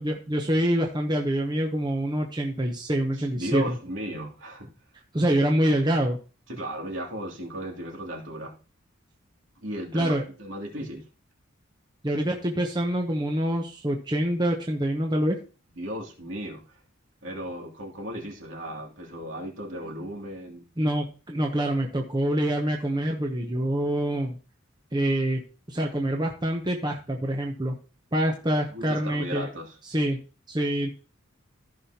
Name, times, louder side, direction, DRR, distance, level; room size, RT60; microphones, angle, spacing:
voice 1, 0.0-3.8 5.1-6.2 9.9-10.2 12.0-15.4 20.8-24.4 24.9-25.4 25.7-27.8 28.1-29.5 29.9-30.2 30.5-30.9, right 1 dB, 20° right, 2 dB, 0.9 m, -26 dB
voice 2, 3.2-4.7 6.5-8.5 9.6-11.0 15.7-16.8 17.2-20.6 28.7-29.8, right 1 dB, 65° right, 0 dB, 2.8 m, -35 dB
14.5 x 5.7 x 2.9 m, 0.35 s
head